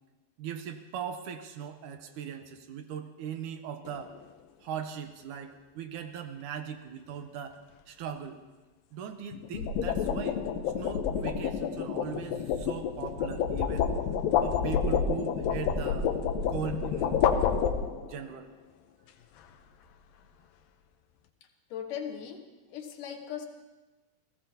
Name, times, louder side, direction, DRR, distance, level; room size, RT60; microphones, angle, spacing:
voice 1, 0.4-4.1 4.6-7.6 7.9-8.4 8.9-10.4 10.8-13.9 14.4-16.1 16.5-17.3 18.0-18.5, right 8 dB, 75° right, 7 dB, 2.3 m, -39 dB
sound 1, 3.9-4.2 9.3-18.2, left 7 dB, 90° left, 2.6 m, -29 dB
voice 2, 21.7-23.5, left 8 dB, 75° left, 3 dB, 2.8 m, -39 dB
30.0 x 17.0 x 2.8 m, 1.2 s
omnidirectional pair, 3.9 m